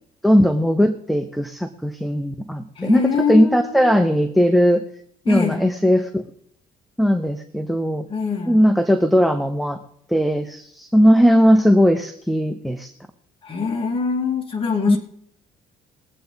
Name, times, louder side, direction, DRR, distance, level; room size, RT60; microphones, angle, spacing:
voice 1, 0.2-3.0 3.3-4.8 5.3-6.2 7.0-8.0 8.5-9.8 10.1-12.9 14.9-15.0, equal, ahead, 7 dB, 0.8 m, -18 dB
voice 2, 2.7-4.0 5.2-5.7 8.1-8.6 13.4-15.0, left 5 dB, 30° left, 2 dB, 2.7 m, -24 dB
21.5 x 8.4 x 4.0 m, 0.69 s
cardioid pair, 110°, 17 cm